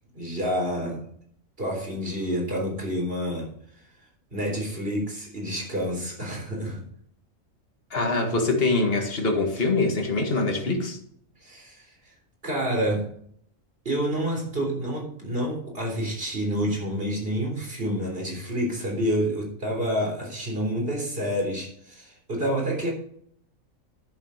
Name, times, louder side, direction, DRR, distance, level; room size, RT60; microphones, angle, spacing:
voice 1, 0.1-1.0 1.6-3.5 4.3-6.8 11.4-11.9 12.4-13.1 13.9-22.9, equal, 45° right, 0 dB, 3.8 m, -28 dB
voice 2, 7.9-11.0, left 3 dB, 45° left, 3 dB, 2.0 m, -24 dB
11.0 x 7.3 x 5.1 m, 0.63 s
omnidirectional pair, 1.4 m